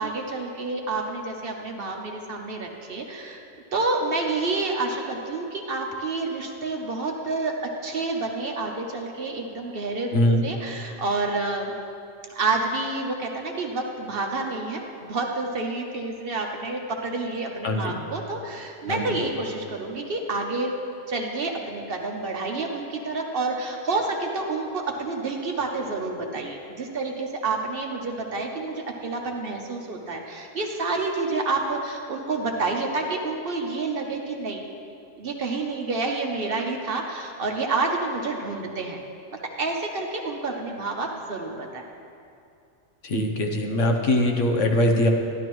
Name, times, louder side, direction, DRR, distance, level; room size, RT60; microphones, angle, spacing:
voice 1, 0.0-3.4 3.7-11.7 12.3-20.7 21.1-34.6 35.2-39.0 39.4-41.9, right 3 dB, 50° right, 1 dB, 0.9 m, -29 dB
voice 2, 10.1-10.5 17.6-18.0 18.9-19.1 43.0-45.1, left 1 dB, 70° left, 3 dB, 1.2 m, -22 dB
12.0 x 11.0 x 3.1 m, 2.5 s
omnidirectional pair, 1.3 m